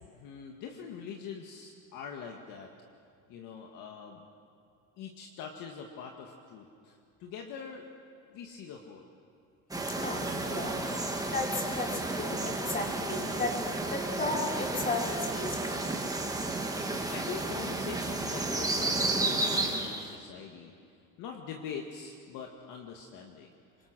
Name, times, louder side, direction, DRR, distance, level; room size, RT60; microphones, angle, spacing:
voice 1, 0.0-2.7 3.3-4.3 5.0-7.9 8.3-9.1 17.1-20.7 21.2-23.5, left 6 dB, 55° left, 1 dB, 2.0 m, -43 dB
sound 1, 9.7-20.2, right 2 dB, 10° right, 1.9 m, -32 dB
voice 2, 10.0-10.8 11.2-13.6 13.9-15.8, left 2 dB, 20° left, -2 dB, 4.9 m, -34 dB
25.5 x 22.5 x 6.2 m, 2.4 s
supercardioid pair, 120°, 38 cm